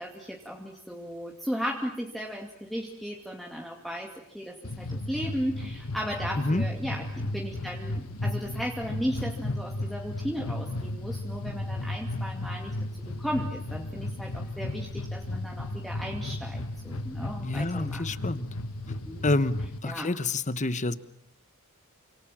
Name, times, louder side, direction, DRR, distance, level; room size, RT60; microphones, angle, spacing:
voice 1, 0.0-12.7 13.1-18.1 18.9-19.2 19.8-20.1, equal, ahead, 0 dB, 2.5 m, -35 dB
sound 1, 4.6-19.8, left 2 dB, 70° left, 1.5 m, -34 dB
voice 2, 17.4-18.5 19.2-20.9, left 2 dB, 35° left, 14 dB, 1.2 m, -28 dB
29.0 x 26.0 x 7.5 m, 0.71 s
head